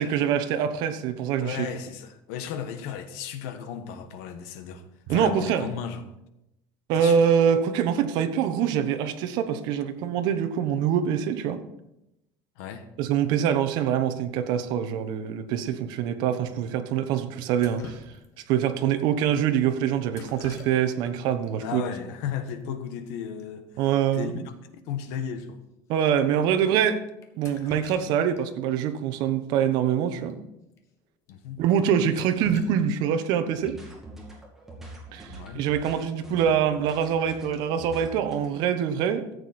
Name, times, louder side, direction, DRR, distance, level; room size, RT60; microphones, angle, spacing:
voice 1, 0.0-1.7 5.1-5.6 6.9-11.6 13.0-18.0 18.5-21.8 23.8-24.3 25.9-27.0 27.4-30.4 31.6-33.8 35.1-39.3, right 8 dB, 55° right, 9 dB, 1.1 m, -24 dB
voice 2, 1.4-4.8 5.1-6.0 7.0-7.3 12.6-12.9 21.6-23.8 24.1-24.5 24.8-25.6 31.3-31.6 35.3-35.6, left 8 dB, 80° left, 9 dB, 1.3 m, -35 dB
Drip, 17.6-18.6 20.1-21.1 21.4-21.5 22.5-22.6 22.8-23.1 23.4-23.5 23.9-24.0 24.5-24.6 25.1-25.2 25.9-26.0 27.2-28.4 28.8-28.9 30.2-30.3 30.7-30.8 31.3-31.4 31.8-33.5 35.5-35.8 36.2-36.6, left 4 dB, 35° left, 1.4 m, -46 dB
sound 1, 33.4-38.5, right 2 dB, 5° right, 2.4 m, -45 dB
14.0 x 8.3 x 4.3 m, 0.88 s
cardioid pair, 170°, 9 cm